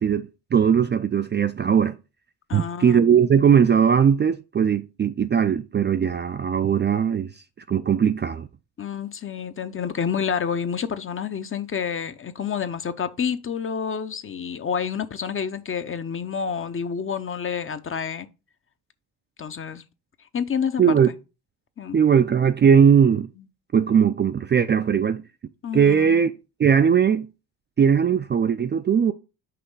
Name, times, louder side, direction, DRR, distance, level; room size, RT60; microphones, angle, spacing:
voice 1, 0.0-1.9 2.5-7.3 7.7-8.5 20.8-21.1 21.9-23.3 23.7-25.2 25.7-26.3 26.6-27.3 27.8-29.1, right 7 dB, 25° right, 0.4 m, -19 dB
voice 2, 2.5-3.2 8.8-18.3 19.4-19.8 20.3-20.9 21.8-22.0 25.6-26.2, left 7 dB, 30° left, 0.7 m, -29 dB
5.8 x 3.0 x 5.4 m
supercardioid pair, 60°, 42 cm